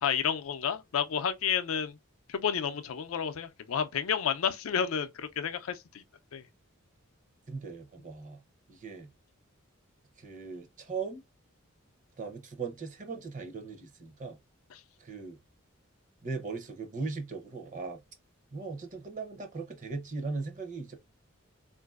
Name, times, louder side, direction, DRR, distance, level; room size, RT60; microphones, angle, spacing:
voice 1, 0.0-2.0 2.3-6.0 6.3-6.4 14.7-14.8, left 7 dB, 75° left, 0.5 m, -31 dB
voice 2, 7.5-8.4 8.7-9.1 10.2-11.2 12.2-14.4 15.0-15.4 16.2-18.0 18.5-21.0, right 4 dB, 40° right, 0.7 m, -38 dB
3.8 x 2.6 x 2.3 m
head